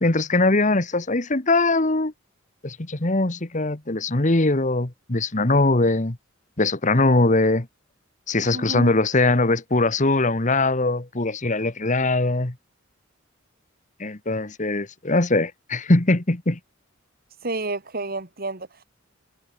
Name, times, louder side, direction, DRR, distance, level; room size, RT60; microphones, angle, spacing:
voice 1, 0.0-2.1 2.6-6.2 6.6-7.7 8.3-12.5 14.0-16.6, left 2 dB, 35° left, 1.5 m, -21 dB
voice 2, 8.5-8.9 17.4-18.8, right 2 dB, 45° right, 2.2 m, -30 dB
head